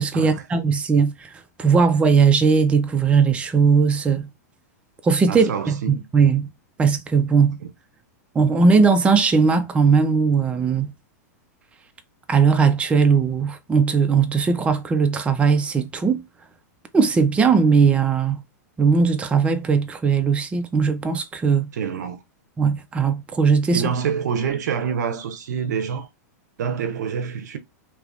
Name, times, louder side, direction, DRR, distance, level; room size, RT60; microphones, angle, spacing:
voice 1, 0.0-1.3 1.6-4.3 5.0-6.5 6.8-7.6 8.3-10.9 12.3-16.2 16.9-18.4 18.8-21.7 22.6-23.8, right 5 dB, 10° right, 0.4 m, -18 dB
voice 2, 5.3-6.0 7.6-7.7 21.7-22.2 23.7-26.1 26.6-27.6, right 7 dB, 80° right, 0.6 m, -26 dB
3.3 x 2.8 x 2.4 m
hypercardioid pair, 130°, 9 cm